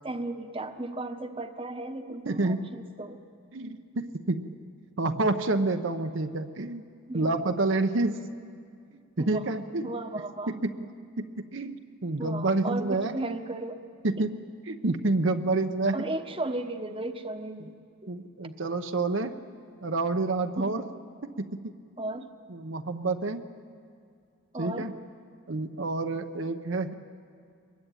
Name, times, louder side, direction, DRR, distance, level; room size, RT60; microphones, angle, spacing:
voice 1, 0.0-3.2 7.1-7.4 9.2-9.4 9.8-10.5 12.2-13.8 15.9-17.8 18.0-18.1 20.6-20.9 22.0-22.3 24.5-24.9, right 2 dB, 25° right, 7 dB, 1.0 m, -35 dB
voice 2, 2.2-2.7 3.5-4.4 5.0-6.8 7.1-8.2 9.2-10.8 11.2-13.1 14.0-14.4 14.7-16.0 17.6-17.7 18.1-19.3 19.8-20.8 21.2-21.7 22.1-22.2 22.5-23.4 24.6-24.9 25.5-26.9, right 2 dB, 65° right, 7 dB, 0.9 m, -28 dB
23.5 x 21.5 x 9.1 m, 2.3 s
head